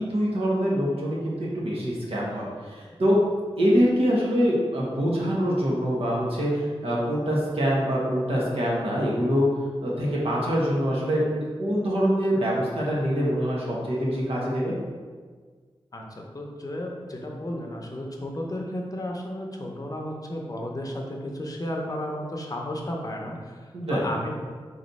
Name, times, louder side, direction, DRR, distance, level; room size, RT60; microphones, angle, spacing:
voice 1, 0.0-3.2 3.6-9.5 9.8-14.7 23.7-24.1, equal, 70° right, -5 dB, 1.2 m, -24 dB
voice 2, 15.9-24.3, left 1 dB, 35° left, 0 dB, 0.7 m, -33 dB
4.0 x 3.1 x 4.0 m, 1.5 s
wide cardioid pair, 80°, 10 cm